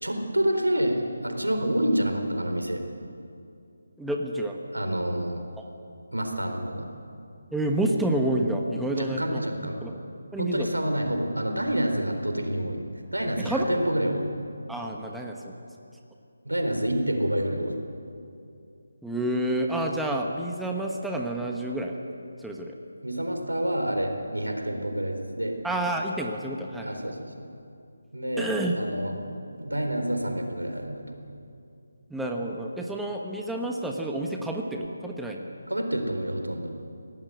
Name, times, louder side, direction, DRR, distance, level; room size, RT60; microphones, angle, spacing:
voice 1, 0.0-2.8 4.7-5.4 6.1-6.9 8.9-9.8 10.4-12.8 13.1-14.3 16.4-17.8 23.0-25.6 26.8-27.5 28.1-29.2 29.6-31.3 35.7-36.8, right 1 dB, 90° right, 4 dB, 4.1 m, -28 dB
voice 2, 4.0-4.6 5.6-5.7 7.5-9.4 9.8-10.0 10.3-10.8 13.4-13.8 14.7-15.5 19.0-22.0 22.4-22.8 25.6-27.0 28.4-28.8 32.1-35.4, right 1 dB, ahead, 0 dB, 1.2 m, -29 dB
23.5 x 18.0 x 8.0 m, 2.6 s
figure-of-eight pair, 155°, 0 cm